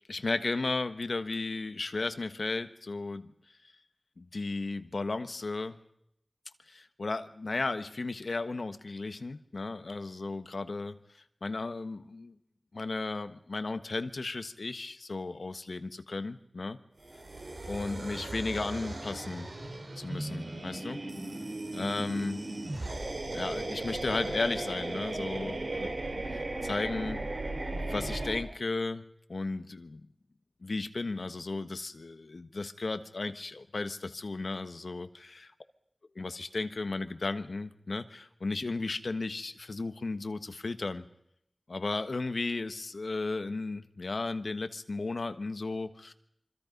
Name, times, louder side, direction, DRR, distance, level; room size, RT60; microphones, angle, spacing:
voice 1, 0.1-3.3 4.2-5.8 6.7-12.3 12.7-16.8 17.7-19.5 20.0-21.0 21.7-22.4 23.3-25.9 26.2-27.3 27.7-29.0 29.3-30.0 30.6-35.5 36.1-41.0 41.7-46.1, left 3 dB, 80° left, 10 dB, 1.3 m, -35 dB
sound 1, 17.0-28.4, right 2 dB, 80° right, 4.2 m, -36 dB
27.0 x 25.0 x 5.4 m, 0.76 s
wide cardioid pair, 60°, 0 cm